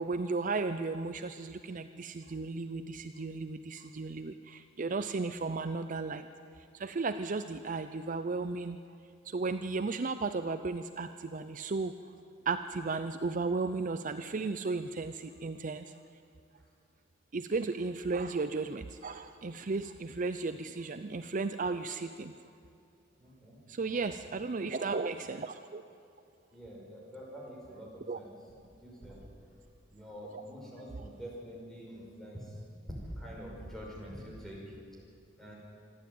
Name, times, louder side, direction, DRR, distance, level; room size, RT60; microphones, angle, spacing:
voice 1, 0.0-6.3 6.6-8.8 9.2-12.0 12.5-15.9 17.3-22.3 23.7-25.8 28.1-28.2 30.3-30.4, right 3 dB, 40° right, 10 dB, 0.5 m, -35 dB
voice 2, 23.2-23.6 23.9-24.3 26.5-28.4 28.8-29.2 29.9-32.6 32.9-34.8 35.4-35.5, equal, ahead, -4 dB, 5.8 m, -46 dB
27.0 x 11.5 x 9.2 m, 2.5 s
head